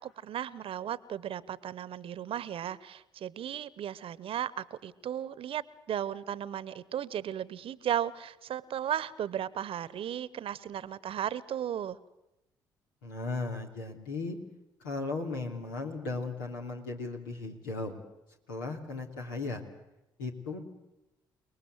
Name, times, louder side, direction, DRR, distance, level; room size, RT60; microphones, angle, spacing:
voice 1, 0.0-12.0, right 10 dB, 60° right, 19 dB, 1.0 m, -35 dB
voice 2, 13.0-14.4 14.8-18.0 18.5-19.6 20.2-20.6, left 3 dB, 85° left, 1 dB, 3.0 m, -36 dB
29.0 x 19.5 x 8.1 m, 0.93 s
hypercardioid pair, 45°, 11 cm